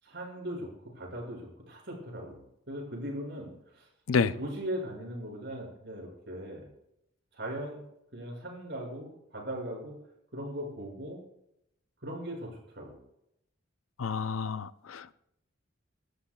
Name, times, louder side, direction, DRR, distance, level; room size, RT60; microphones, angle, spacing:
voice 1, 0.0-3.9 4.2-6.7 7.3-7.8 8.1-10.0 10.3-11.2 12.0-13.0, equal, 55° right, 6.4 m, -39 dB
voice 2, 14.0-15.1, left 5 dB, 85° left, 0.6 m, -29 dB
25.5 x 13.0 x 2.4 m
head